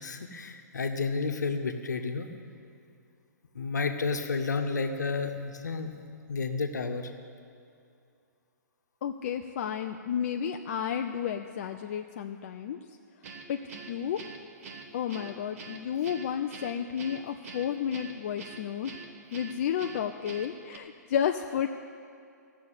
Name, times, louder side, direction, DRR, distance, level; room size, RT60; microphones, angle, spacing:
voice 1, 0.0-2.3 3.5-7.1, left 4 dB, 70° left, 5 dB, 1.2 m, -31 dB
voice 2, 9.0-12.8 13.5-13.6 13.9-14.2 14.9-18.9 19.3-21.7, left 8 dB, 45° left, 5 dB, 0.5 m, -32 dB
Guitar, 13.2-20.8, right 4 dB, 50° right, 1.5 m, -45 dB
15.0 x 6.8 x 8.0 m, 2.4 s
figure-of-eight pair, 120°, 10 cm